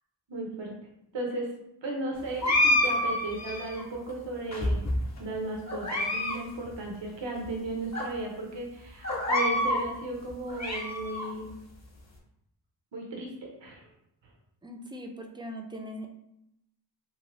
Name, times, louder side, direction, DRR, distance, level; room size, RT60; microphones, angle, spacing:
voice 1, 0.3-0.7 1.1-1.5 1.8-4.8 5.2-11.5 12.9-13.8, right 2 dB, 75° right, -1 dB, 0.8 m, -35 dB
sound 1, 2.4-3.8 4.5-5.2 5.7-6.4 6.7-6.8 7.4-7.5 7.9-8.0 9.0-9.8 10.3-11.3, left 1 dB, 35° left, 0.8 m, -27 dB
voice 2, 14.6-16.1, equal, 10° right, 3 dB, 0.4 m, -40 dB
2.7 x 2.5 x 3.0 m, 0.81 s
wide cardioid pair, 45°, 45 cm